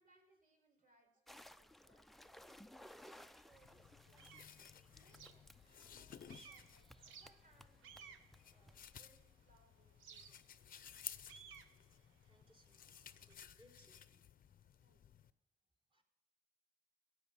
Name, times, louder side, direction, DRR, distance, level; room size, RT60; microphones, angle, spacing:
voice 1, 0.0-2.6 3.1-4.3 4.9-8.2 8.5-10.4 14.8-15.2, right 2 dB, 45° right, 2 dB, 4.9 m, -73 dB
sound 1, 1.3-8.9, equal, ahead, 0.5 m, -61 dB
sound 2, 3.1-3.2 3.7-6.0 6.3-9.4 10.0-13.3, right 6 dB, 80° right, 1.0 m, -60 dB
sound 3, 3.5-15.3, left 9 dB, 45° left, 0.6 m, -57 dB
voice 2, 12.2-14.2 15.9-16.0, equal, 25° right, -2 dB, 3.5 m, -69 dB
16.0 x 8.4 x 6.2 m, 0.85 s
cardioid pair, 90°, 20 cm